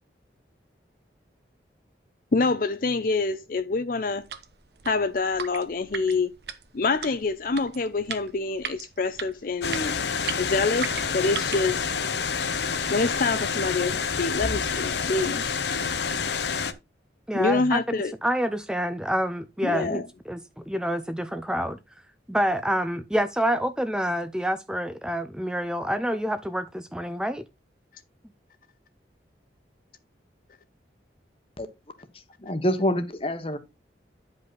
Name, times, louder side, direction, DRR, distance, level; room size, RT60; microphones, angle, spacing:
voice 1, 2.3-4.2 4.9-6.3 6.7-10.0 10.4-11.9 12.9-15.5 17.3-18.1 19.6-20.0, left 3 dB, 50° left, 0.5 m, -26 dB
sound 1, 4.1-11.7, right 7 dB, 65° right, 0.9 m, -38 dB
sound 2, 9.6-16.7, left 5 dB, 70° left, 0.8 m, -28 dB
voice 2, 17.3-17.8 18.2-20.0 20.3-21.8 22.3-27.4, equal, 5° right, 0.4 m, -27 dB
voice 3, 32.4-33.6, equal, 30° left, 1.1 m, -26 dB
9.6 x 5.3 x 3.9 m
head